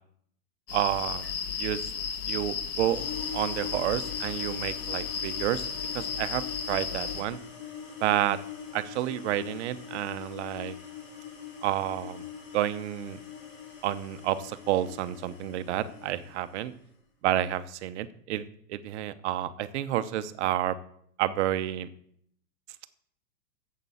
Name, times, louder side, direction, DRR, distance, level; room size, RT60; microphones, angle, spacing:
sound 1, 0.7-7.2, left 6 dB, 75° left, 1.8 m, -34 dB
voice 1, 0.7-1.3 1.6-1.9 2.2-3.0 3.3-5.7 5.9-7.4 8.0-8.4 8.7-10.8 11.6-12.2 12.5-13.2 13.8-16.7 17.2-20.8 21.2-21.9, right 12 dB, 45° right, 13 dB, 0.8 m, -30 dB
sound 2, 2.8-16.7, left 7 dB, 30° left, 3.5 m, -43 dB
8.8 x 7.5 x 7.0 m, 0.67 s
hypercardioid pair, 150°, 48 cm